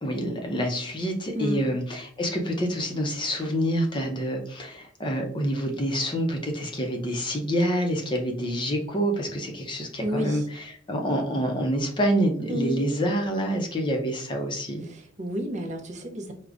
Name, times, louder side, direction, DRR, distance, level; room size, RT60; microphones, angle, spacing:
voice 1, 0.0-14.8, equal, 25° left, 2 dB, 0.5 m, -27 dB
voice 2, 1.3-1.8 10.0-10.5 12.5-12.9 14.8-16.3, equal, 35° right, 2 dB, 0.6 m, -31 dB
4.8 x 2.1 x 2.4 m, 0.62 s
head